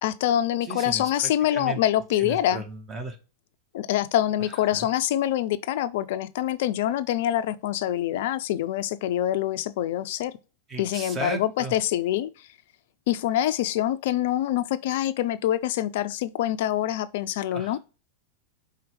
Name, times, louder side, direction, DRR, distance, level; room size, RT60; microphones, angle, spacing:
voice 1, 0.0-2.6 3.7-10.4 10.8-12.5 13.1-17.8, left 12 dB, 55° left, 0.3 m, -25 dB
voice 2, 0.6-1.1 1.5-1.8 2.2-3.2 4.7-4.9 10.7-11.7 17.5-17.8, right 3 dB, 25° right, 0.9 m, -35 dB
4.5 x 3.4 x 3.1 m
figure-of-eight pair, 90°, 0 cm